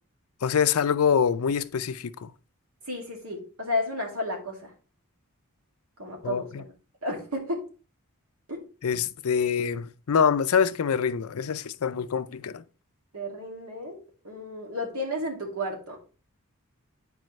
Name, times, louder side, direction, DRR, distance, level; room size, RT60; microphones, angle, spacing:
voice 1, 0.4-2.3 6.2-6.6 8.8-12.6, left 7 dB, 75° left, 0.5 m, -25 dB
voice 2, 2.9-4.7 6.0-6.5 7.0-7.6 8.5-8.6 13.1-16.0, left 1 dB, 75° right, 2.3 m, -32 dB
9.1 x 4.9 x 3.1 m
head